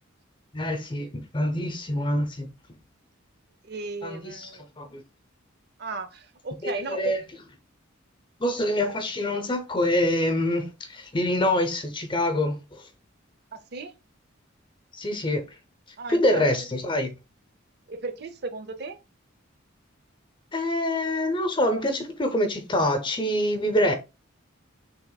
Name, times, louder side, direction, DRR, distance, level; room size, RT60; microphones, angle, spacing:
voice 1, 0.5-2.5 4.0-4.5 4.8-5.0 6.6-7.2 8.4-12.9 14.9-15.4 16.1-17.1 20.5-23.9, left 1 dB, 25° left, 0.7 m, -25 dB
voice 2, 3.6-4.6 5.8-7.1 8.9-9.0 13.5-13.9 16.0-16.7 17.9-19.0, right 3 dB, 55° right, 0.6 m, -35 dB
5.9 x 3.5 x 2.3 m
head